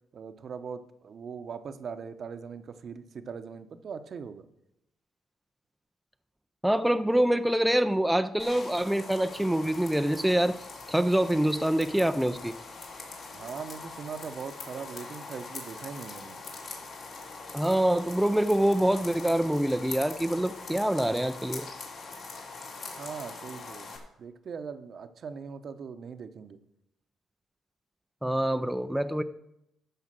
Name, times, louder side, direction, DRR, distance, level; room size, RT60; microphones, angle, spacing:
voice 1, 0.1-4.5 13.3-16.4 23.0-26.6, right 6 dB, 55° right, 9 dB, 0.9 m, -40 dB
voice 2, 6.6-10.6 10.9-12.6 17.5-21.7 28.2-29.2, right 1 dB, 5° right, 8 dB, 0.5 m, -25 dB
sound 1, 8.4-24.0, left 3 dB, 60° left, 3.0 m, -43 dB
12.5 x 4.9 x 7.6 m, 0.79 s
cardioid pair, 90°, 0 cm